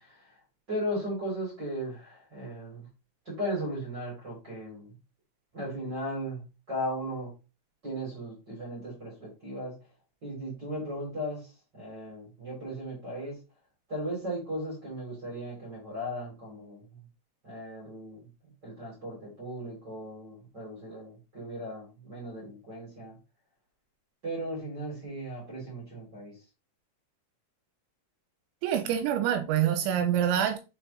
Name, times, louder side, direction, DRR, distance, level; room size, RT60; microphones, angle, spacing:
voice 1, 0.7-2.8 3.3-4.9 5.5-6.4 6.7-7.3 7.8-9.7 10.2-11.4 11.7-13.3 13.9-16.8 17.4-18.2 18.6-23.1 24.2-26.3, equal, 30° right, 2.5 m, -36 dB
voice 2, 28.6-30.6, right 10 dB, 85° right, 2.9 m, -26 dB
6.5 x 5.7 x 2.8 m
omnidirectional pair, 5.4 m